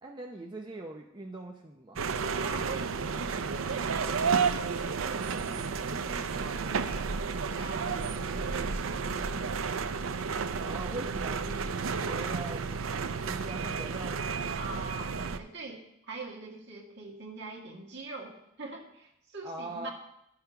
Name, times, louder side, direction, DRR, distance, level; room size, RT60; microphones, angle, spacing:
voice 1, 0.0-2.0 10.6-14.3 19.4-19.9, right 2 dB, 20° right, 0 dB, 0.6 m, -42 dB
sound 1, 2.0-15.4, right 5 dB, 70° right, 0.5 m, -32 dB
voice 2, 2.4-7.1 7.5-9.6 14.6-19.9, right 3 dB, 55° right, 0 dB, 1.9 m, -43 dB
11.0 x 5.8 x 5.8 m, 0.81 s
head